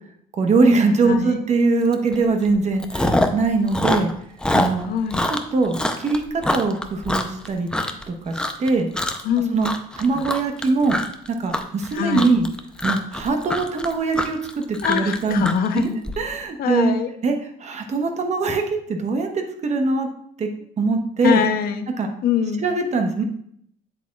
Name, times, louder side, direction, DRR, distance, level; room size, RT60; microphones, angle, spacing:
voice 1, 0.4-4.1 4.5-4.9 5.5-7.7 8.1-8.9 9.5-9.7 10.0-11.0 11.4-12.5 12.8-15.4 15.7-15.9 16.2-16.9 17.2-18.6 18.9-20.1 20.4-20.5 20.8-21.4 22.0-22.1 22.6-23.2, right 3 dB, 45° right, 4 dB, 1.1 m, -22 dB
voice 2, 1.0-1.4 4.8-5.2 9.2-9.6 10.1-10.2 11.9-12.4 14.8-16.0 16.6-17.1 21.2-21.9 22.2-22.6, left 8 dB, 65° left, 8 dB, 0.7 m, -23 dB
Chewing mastication, 1.9-2.1 2.4-3.4 3.7-8.0 8.3-8.7 8.9-9.3 9.6-16.1, left 1 dB, 5° left, 0.6 m, -24 dB
7.9 x 7.5 x 2.4 m, 0.68 s
cardioid pair, 110°, 17 cm